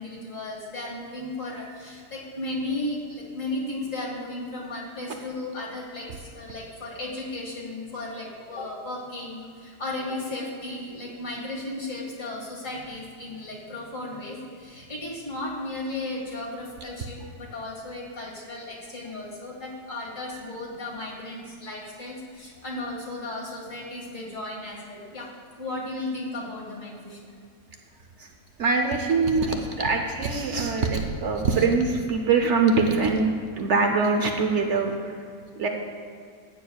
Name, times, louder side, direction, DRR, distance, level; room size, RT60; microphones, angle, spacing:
voice 1, 0.0-25.3 25.6-27.3, left 2 dB, 50° left, -4 dB, 2.2 m, -35 dB
voice 2, 28.6-35.2 35.6-35.7, right 4 dB, 60° right, 3 dB, 0.7 m, -23 dB
14.5 x 8.9 x 2.3 m, 2.1 s
omnidirectional pair, 1.9 m